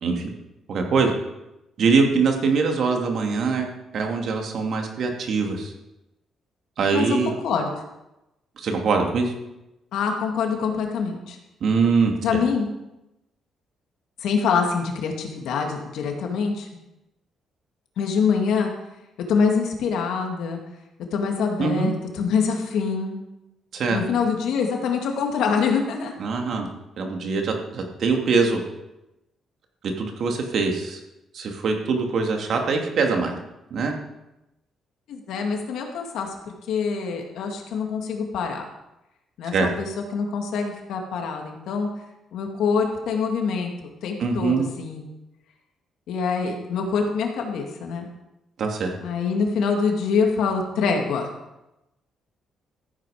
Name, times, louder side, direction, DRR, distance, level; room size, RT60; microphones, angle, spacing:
voice 1, 0.7-1.1 1.8-3.7 3.9-5.7 6.8-7.3 8.6-9.3 11.6-12.1 21.6-21.9 23.7-24.0 26.2-26.7 27.0-28.6 29.8-31.0 31.3-33.3 33.7-33.9 39.5-39.7 44.2-44.7 48.6-48.9, right 4 dB, 65° right, 2 dB, 2.7 m, -23 dB
voice 2, 6.9-7.7 9.9-11.4 12.2-12.7 14.2-16.7 18.0-18.7 19.3-20.6 21.1-23.2 23.9-26.1 35.1-36.3 36.7-38.6 39.4-41.9 42.3-45.0 46.1-48.1 49.0-51.3, left 5 dB, 80° left, 2 dB, 2.5 m, -25 dB
14.5 x 9.5 x 5.2 m, 0.92 s
cardioid pair, 90°, 0 cm